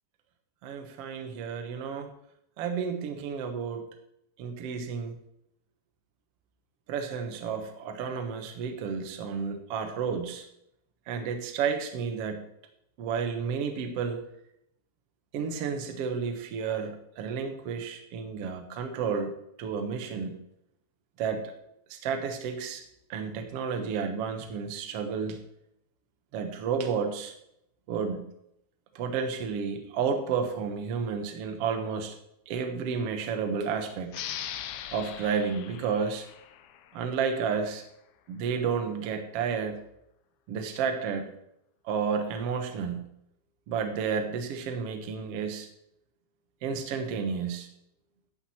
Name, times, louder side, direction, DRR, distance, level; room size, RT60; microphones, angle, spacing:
voice 1, 0.6-2.1 2.6-3.9 4.4-5.2 6.9-10.5 11.1-12.4 13.0-14.2 15.3-19.3 19.6-20.4 21.2-21.5 21.9-22.8 23.1-25.4 26.3-27.3 27.9-28.2 28.9-32.1 32.5-34.1 34.9-36.3 36.9-37.8 38.3-39.8 40.5-41.3 41.8-43.1 43.7-45.7 46.6-47.7, right 6 dB, 75° right, 6 dB, 1.4 m, -31 dB
sound 1, 34.1-37.4, left 10 dB, 80° left, 2.6 m, -40 dB
12.5 x 7.6 x 4.3 m, 0.76 s
omnidirectional pair, 4.5 m